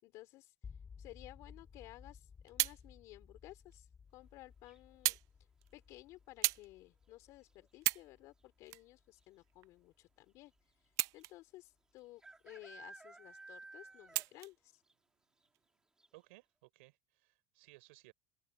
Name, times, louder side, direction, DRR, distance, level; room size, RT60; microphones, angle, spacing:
voice 1, 0.0-14.8, left 18 dB, 55° left, 3.6 m, -56 dB
sound 1, 0.6-10.6, left 6 dB, 25° left, 4.7 m, -58 dB
sound 2, 2.1-2.8 3.7-3.8 5.0-5.3 5.6-5.8 6.4-6.7 7.2-7.3 7.7-8.1 8.7-9.7 10.9-11.6 12.0-12.1 14.1-14.6 15.4-15.6, right 22 dB, 55° right, 0.3 m, -36 dB
sound 3, 4.7-5.1 7.0-7.3 7.6-7.7 7.9-8.5 9.2-9.3 9.5-9.6 11.2-11.3 12.2-14.5 14.9-15.0 15.4-15.5 16.0-16.1, right 3 dB, 10° right, 3.4 m, -55 dB
voice 2, 16.1-18.1, right 24 dB, 80° right, 4.5 m, -61 dB
open air
supercardioid pair, 120°, 6 cm